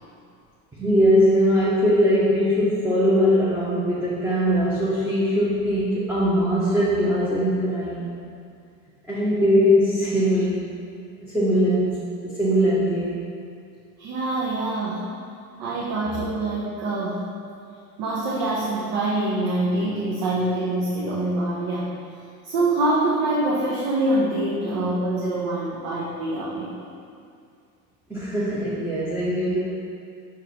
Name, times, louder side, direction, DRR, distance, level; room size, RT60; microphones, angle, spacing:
voice 1, 0.7-8.1 9.1-10.6 11.2-11.9 12.2-13.2 28.1-29.6, equal, 5° right, -9 dB, 1.0 m, -21 dB
voice 2, 14.0-15.1 15.6-17.3 18.0-21.9 22.4-26.9, right 2 dB, 55° right, -5 dB, 1.0 m, -25 dB
6.3 x 3.9 x 4.2 m, 2.4 s
figure-of-eight pair, 70°, 49 cm